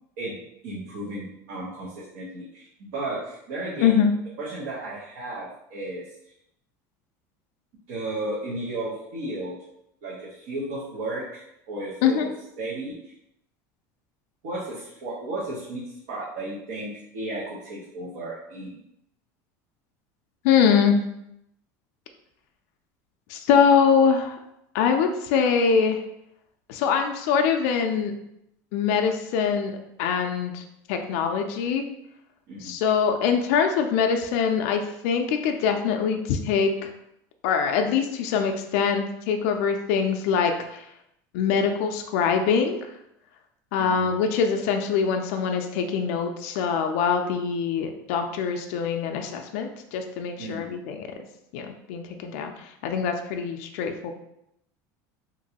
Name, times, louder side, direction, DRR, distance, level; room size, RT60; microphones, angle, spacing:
voice 1, 0.6-4.0 4.4-6.1 7.9-9.6 10.0-12.3 12.6-13.1 14.4-18.8 32.5-32.8 43.8-44.2 50.4-50.7, right 2 dB, 55° right, -6 dB, 0.8 m, -34 dB
voice 2, 3.8-4.1 12.0-12.3 20.4-21.0 23.3-24.4 24.7-26.0 26.7-28.1 28.7-30.6 30.9-31.9 32.6-36.9 37.4-40.8 41.3-42.8 43.7-51.1 51.5-54.1, left 6 dB, 60° left, 4 dB, 0.4 m, -23 dB
3.0 x 2.5 x 2.8 m, 0.80 s
cardioid pair, 180°, 9 cm